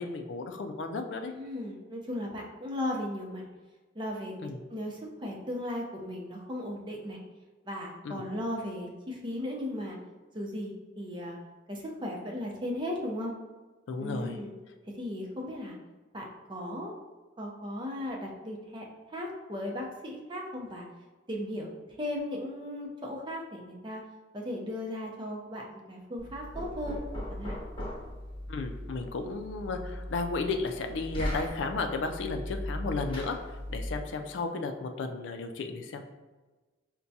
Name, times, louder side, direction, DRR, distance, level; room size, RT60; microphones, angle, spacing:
voice 1, 0.0-1.3 4.4-4.6 8.0-8.2 13.9-14.4 28.5-33.4 33.7-36.0, left 3 dB, 75° left, 5 dB, 0.4 m, -34 dB
voice 2, 1.3-3.4 3.9-7.2 7.6-10.0 10.3-11.4 11.7-13.3 14.0-14.5 14.9-15.8 16.1-16.9 17.4-20.9 21.3-21.7 22.0-24.0 24.3-27.0 27.3-27.6, left 1 dB, 25° right, -1 dB, 0.6 m, -36 dB
Knock, 26.2-34.1, left 1 dB, 30° left, 0.9 m, -38 dB
5.7 x 2.2 x 2.7 m, 1.3 s
head